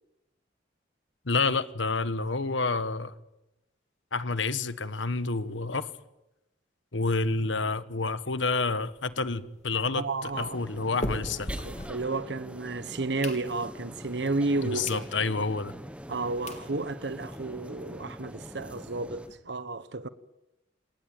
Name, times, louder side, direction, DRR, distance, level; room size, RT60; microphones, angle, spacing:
voice 1, 1.2-3.1 4.1-5.9 6.9-11.5 14.6-15.7, left 3 dB, 80° left, 1.4 m, -29 dB
sound 1, 8.6-12.6 13.0-13.9 14.4-14.5 14.8-15.1 15.5-15.6 16.2-16.3 16.5-16.7 17.1-17.2 17.4-17.5 17.8-17.9 18.2-19.3, left 1 dB, 40° left, 3.5 m, -40 dB
voice 2, 9.9-10.6 11.6-15.1 16.1-20.1, right 3 dB, 65° right, 1.1 m, -32 dB
sound 2, 10.3-19.3, equal, 5° right, 1.3 m, -44 dB
27.5 x 19.5 x 9.2 m
head